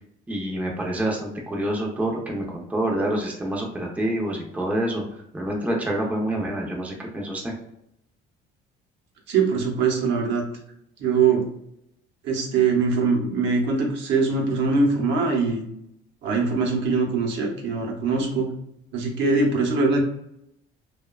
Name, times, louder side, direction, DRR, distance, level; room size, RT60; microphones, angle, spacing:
voice 1, 0.3-5.0 5.3-7.5, right 1 dB, 5° right, -1 dB, 0.5 m, -27 dB
voice 2, 9.3-10.4 11.0-11.4 12.2-15.6 16.2-18.5 18.9-20.0, right 4 dB, 70° right, 0 dB, 0.8 m, -22 dB
2.8 x 2.2 x 2.3 m, 0.78 s
cardioid pair, 110°, 20 cm